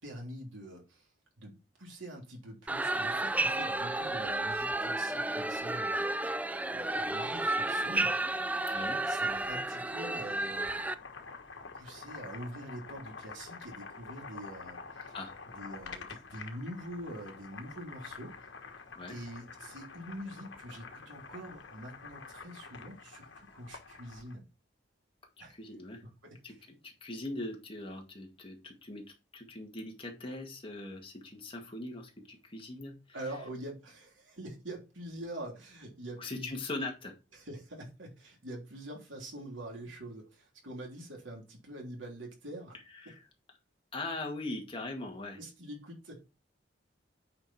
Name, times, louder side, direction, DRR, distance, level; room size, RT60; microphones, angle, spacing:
voice 1, 0.0-1.1 1.4-8.2 9.0-10.9 11.8-15.1 15.5-18.3 19.1-24.4 25.4-25.6 26.2-26.6 33.1-36.6 37.3-42.7 45.4-46.3, right 1 dB, 90° right, 3.4 m, -45 dB
sound 1, 2.7-10.9, right 2 dB, 10° right, 0.3 m, -32 dB
voice 2, 8.7-9.0 15.1-15.3 19.0-19.2 25.5-26.0 26.4-26.5 26.8-29.0 29.3-32.9 36.2-37.1 43.0-43.2 43.9-45.4, left 2 dB, 30° left, 2.0 m, -40 dB
Boiling, 10.3-24.4, left 4 dB, 80° left, 1.4 m, -48 dB
8.8 x 5.1 x 4.5 m
head